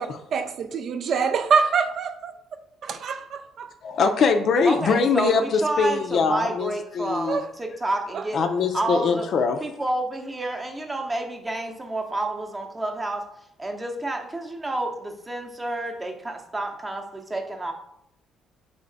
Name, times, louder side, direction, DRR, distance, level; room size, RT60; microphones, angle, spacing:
voice 1, 0.3-2.3 2.8-3.7 7.1-7.5 8.1-8.3, right 5 dB, 55° right, 0.3 m, -25 dB
voice 2, 3.8-7.4 8.3-9.6, left 5 dB, 60° left, 0.4 m, -22 dB
voice 3, 4.6-8.4 8.7-9.3 9.6-13.2 13.6-17.7, right 2 dB, 20° right, 0.7 m, -29 dB
3.4 x 3.1 x 3.9 m
cardioid pair, 90°, 0 cm